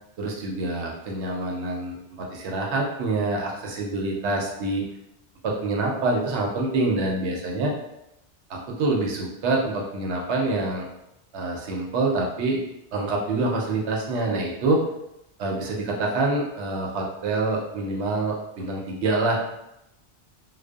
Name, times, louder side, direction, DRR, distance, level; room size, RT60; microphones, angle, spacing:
voice 1, 0.2-4.9 5.4-7.7 8.5-10.9 11.3-12.6 12.9-14.8 15.4-19.4, right 2 dB, 75° right, -1 dB, 0.9 m, -26 dB
2.5 x 2.2 x 2.3 m, 0.85 s
omnidirectional pair, 1.2 m